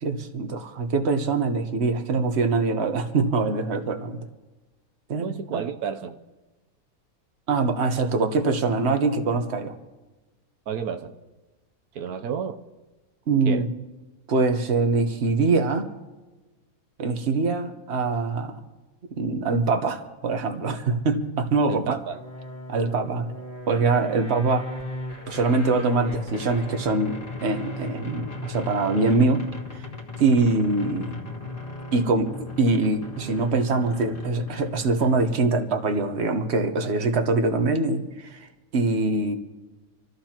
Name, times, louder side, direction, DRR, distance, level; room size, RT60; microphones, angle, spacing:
voice 1, 0.0-4.2 5.1-5.6 7.5-9.7 13.3-13.7 14.3-15.9 17.0-18.6 19.1-22.0 22.7-23.2 23.7-24.7 25.3-29.5 29.7-29.8 30.2-31.2 31.9-38.5 38.7-39.4, right 3 dB, 50° right, 6 dB, 1.4 m, -23 dB
voice 2, 5.2-6.2 10.7-11.1 11.9-12.6 13.5-13.6 21.7-22.2, right 7 dB, 85° right, 7 dB, 1.3 m, -31 dB
sound 1, 22.1-35.4, left 2 dB, 25° left, 1.8 m, -36 dB
27.0 x 14.5 x 2.9 m, 1.2 s
omnidirectional pair, 1.5 m